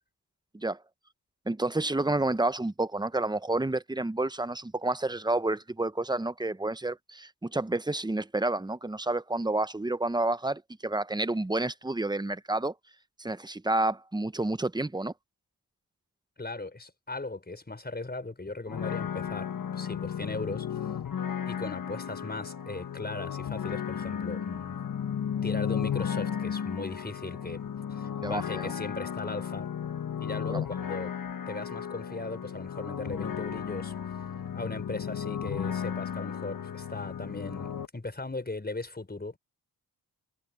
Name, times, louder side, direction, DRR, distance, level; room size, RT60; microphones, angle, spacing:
voice 1, 1.5-12.7 13.2-15.1 28.2-28.7 30.5-30.7, right 2 dB, 10° right, 0.9 m, -29 dB
voice 2, 16.4-20.7 21.5-24.8 25.4-27.6 27.9-29.7 30.2-31.1 31.5-33.9 34.5-39.4, left 2 dB, 25° left, 5.0 m, -38 dB
sound 1, 18.7-37.9, left 8 dB, 55° left, 1.4 m, -34 dB
cardioid pair, 65°, 40 cm